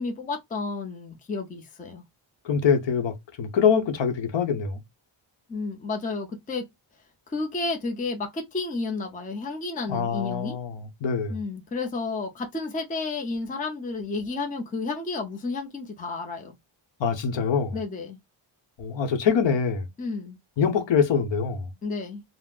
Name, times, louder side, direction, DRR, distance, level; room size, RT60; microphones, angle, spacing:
voice 1, 0.0-2.0 5.5-6.6 7.3-10.6 11.3-16.6 17.7-18.2 20.0-20.4 21.8-22.2, left 3 dB, 15° left, 0.5 m, -31 dB
voice 2, 2.4-4.8 9.9-11.4 17.0-17.8 18.8-19.9 20.6-21.7, left 6 dB, 60° left, 0.8 m, -24 dB
3.6 x 2.0 x 2.3 m
wide cardioid pair, 165°, 49 cm